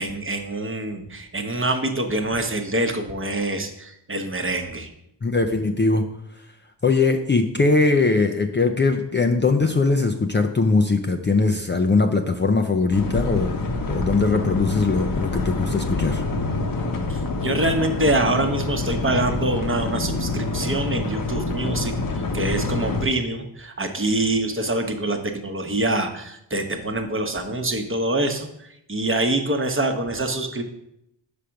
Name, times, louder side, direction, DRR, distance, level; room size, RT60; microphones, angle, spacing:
voice 1, 0.0-4.9 17.1-30.6, right 2 dB, 25° right, 5 dB, 1.0 m, -25 dB
voice 2, 5.2-6.0 6.8-16.2, left 3 dB, 25° left, 3 dB, 0.6 m, -21 dB
sound 1, 12.9-23.0, left 2 dB, 45° left, 1.0 m, -26 dB
5.1 x 5.0 x 5.8 m, 0.78 s
cardioid pair, 65°, 45 cm